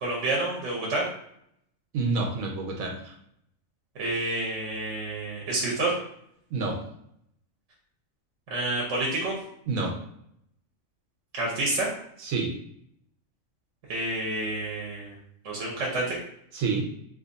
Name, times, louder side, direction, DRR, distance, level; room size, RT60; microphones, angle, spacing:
voice 1, 0.0-1.0 4.0-5.9 8.5-9.3 11.3-11.9 13.9-15.1 15.4-16.2, right 2 dB, 65° right, -3 dB, 1.2 m, -28 dB
voice 2, 1.9-3.1 6.5-6.8 9.7-10.0 12.2-12.5 16.5-16.8, right 4 dB, 90° right, 1 dB, 1.2 m, -28 dB
2.8 x 2.5 x 3.9 m, 0.72 s
omnidirectional pair, 1.4 m